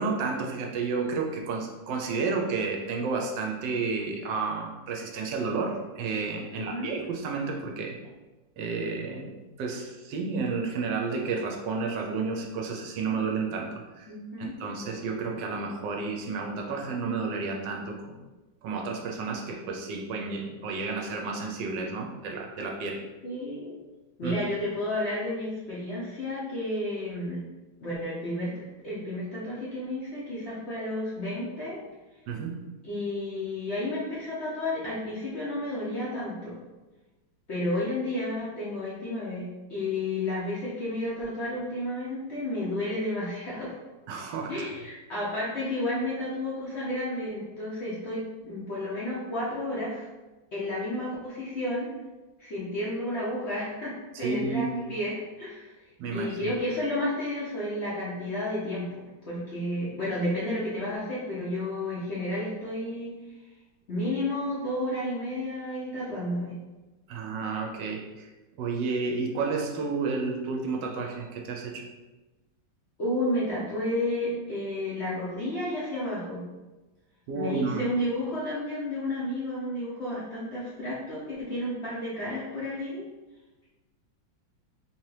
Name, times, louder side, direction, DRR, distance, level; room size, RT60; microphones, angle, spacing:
voice 1, 0.0-8.0 8.6-14.1 14.4-18.2 18.6-23.0 24.2-24.4 32.3-32.5 44.1-44.5 54.1-54.7 56.0-56.5 67.1-68.3 68.6-71.8 77.3-77.8, right 4 dB, 75° right, 1 dB, 1.1 m, -31 dB
voice 2, 6.5-6.9 14.1-14.5 23.2-23.8 24.2-27.4 27.8-31.8 32.8-36.5 37.5-43.7 44.5-50.1 50.5-51.9 52.4-55.7 56.1-58.9 59.3-63.1 63.9-66.6 73.0-76.4 77.3-83.0, left 1 dB, 55° left, -8 dB, 0.8 m, -31 dB
3.7 x 2.8 x 3.1 m, 1.1 s
omnidirectional pair, 2.0 m